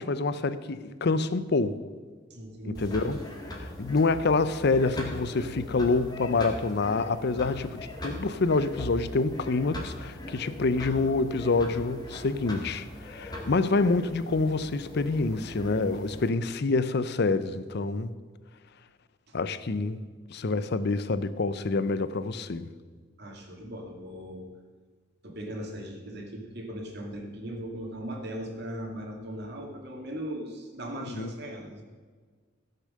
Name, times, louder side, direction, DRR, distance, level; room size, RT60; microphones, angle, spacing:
voice 1, 0.0-1.8 2.7-3.2 3.6-18.1 19.3-20.0 20.3-22.7 31.1-31.3, left 3 dB, 60° left, 0.6 m, -27 dB
voice 2, 2.3-3.1 8.1-8.2 23.2-24.5 25.2-31.8, right 1 dB, 60° right, 2.3 m, -38 dB
sound 1, 2.7-16.3, left 1 dB, 20° left, 2.2 m, -40 dB
15.5 x 6.7 x 6.5 m
head